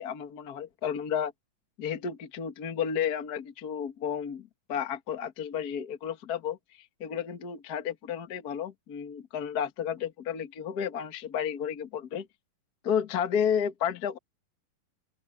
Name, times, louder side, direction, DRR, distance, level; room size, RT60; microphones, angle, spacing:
voice 1, 0.0-1.3 1.8-6.6 7.0-12.3 12.8-14.2, left 8 dB, 40° left, 1.4 m, -32 dB
open air
omnidirectional pair, 3.8 m